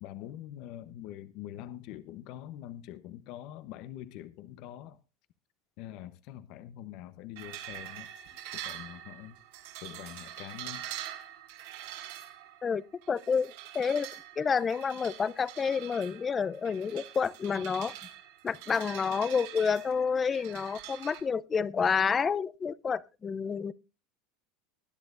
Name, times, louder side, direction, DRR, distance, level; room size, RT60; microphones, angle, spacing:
voice 1, 0.0-5.0 5.8-8.1 8.5-9.4 9.8-10.9, left 12 dB, 55° left, 0.9 m, -44 dB
sound 1, 7.4-21.2, right 12 dB, 75° right, 3.7 m, -45 dB
voice 2, 12.6-14.1 14.4-17.9 18.4-23.7, left 6 dB, 20° left, 0.5 m, -29 dB
20.5 x 10.5 x 2.5 m
supercardioid pair, 130°, 0 cm